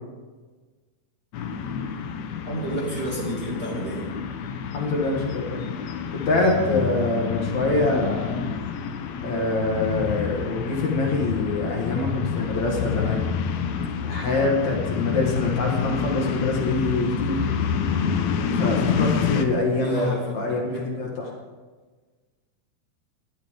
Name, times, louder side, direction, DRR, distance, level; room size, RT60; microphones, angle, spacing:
sound 1, 1.3-19.5, left 6 dB, 80° left, 1.6 m, -28 dB
voice 1, 2.5-4.0 12.3-12.4 19.8-20.9, right 1 dB, 30° right, -5 dB, 2.2 m, -30 dB
voice 2, 4.7-5.6 6.1-8.4 9.2-13.2 14.0-17.5 18.6-21.3, left 2 dB, 55° left, -1 dB, 2.8 m, -25 dB
18.5 x 12.0 x 3.7 m, 1.3 s
omnidirectional pair, 4.4 m